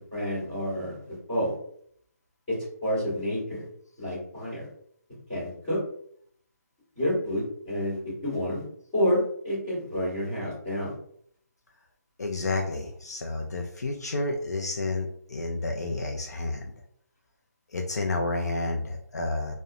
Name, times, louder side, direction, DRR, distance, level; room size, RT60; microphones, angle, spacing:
voice 1, 0.1-1.5 2.8-3.6 4.0-4.7 5.3-5.8 6.9-8.0 8.2-8.6 8.9-10.9, equal, 15° left, -11 dB, 1.3 m, -29 dB
voice 2, 12.2-16.7 17.7-19.5, left 2 dB, 70° left, 2 dB, 0.4 m, -30 dB
2.8 x 2.1 x 2.4 m, 0.65 s
hypercardioid pair, 180°, 9 cm